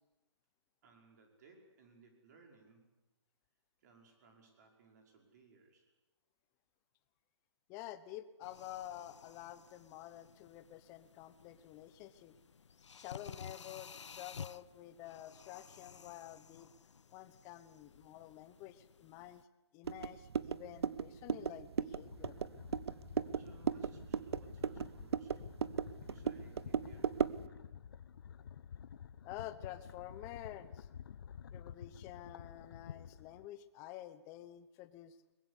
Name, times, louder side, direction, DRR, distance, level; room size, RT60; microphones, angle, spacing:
voice 1, 0.8-3.0 3.8-5.9 23.0-25.7 26.0-27.7, right 4 dB, 35° right, 2 dB, 5.4 m, -64 dB
voice 2, 7.7-12.3 12.9-16.7 17.1-19.4 19.7-22.4 29.2-30.9 31.5-35.2, left 13 dB, 20° left, 13 dB, 1.0 m, -50 dB
sound 1, 8.4-19.4, left 6 dB, 85° left, 0.7 m, -54 dB
sound 2, 19.8-27.5, right 7 dB, 65° right, 0.8 m, -37 dB
sound 3, 21.9-33.5, left 8 dB, 50° left, 0.9 m, -51 dB
22.5 x 21.0 x 8.3 m, 1.1 s
hypercardioid pair, 155°, 15 cm